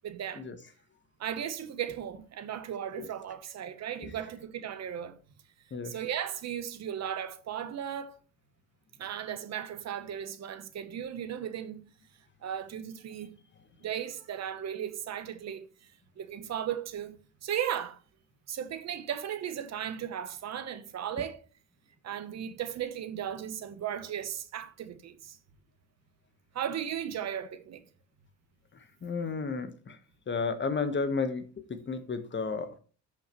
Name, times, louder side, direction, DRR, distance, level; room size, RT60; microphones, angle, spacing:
voice 1, 0.0-0.5 1.2-5.2 5.8-8.2 9.0-11.8 12.4-13.4 13.8-15.7 16.2-18.0 18.5-21.4 22.0-25.4 26.5-27.8, right 9 dB, 60° right, 0.9 m, -36 dB
voice 2, 28.7-30.0 30.3-32.8, left 4 dB, 40° left, 1.3 m, -33 dB
13.0 x 5.4 x 3.1 m
cardioid pair, 90°, 30 cm